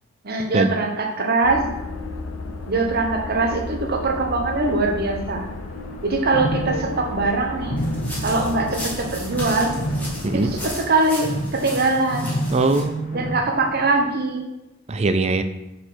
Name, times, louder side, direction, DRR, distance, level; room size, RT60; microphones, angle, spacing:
voice 1, 0.2-1.6 2.7-5.5 6.0-7.8 8.2-9.7 10.3-12.3 13.1-14.4, right 3 dB, 50° right, 2 dB, 1.0 m, -22 dB
sound 1, 1.4-10.7, left 2 dB, 85° left, 0.7 m, -33 dB
sound 2, 5.4-5.6 5.9-14.1, equal, 40° left, 0.8 m, -30 dB
sound 3, 7.8-12.8, equal, 10° left, 1.5 m, -35 dB
voice 2, 12.5-13.3 14.9-15.4, right 3 dB, 35° right, 10 dB, 0.4 m, -21 dB
5.0 x 4.2 x 5.7 m, 0.93 s
head